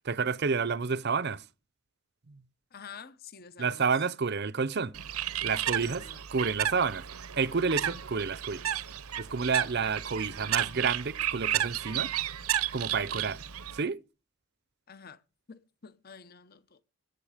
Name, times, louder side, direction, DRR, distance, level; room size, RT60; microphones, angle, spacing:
voice 1, 0.0-1.4 2.3-2.4 3.6-4.9 5.4-6.0 6.3-7.0 7.3-8.7 9.2-12.1 12.7-13.4 13.7-14.0, right 5 dB, 50° right, 0.6 m, -29 dB
voice 2, 2.7-3.9 5.8-6.2 14.9-15.2 15.5-16.8, left 6 dB, 45° left, 0.9 m, -48 dB
Bird, 4.9-13.8, right 10 dB, 85° right, 0.8 m, -33 dB
20.5 x 8.0 x 5.0 m
head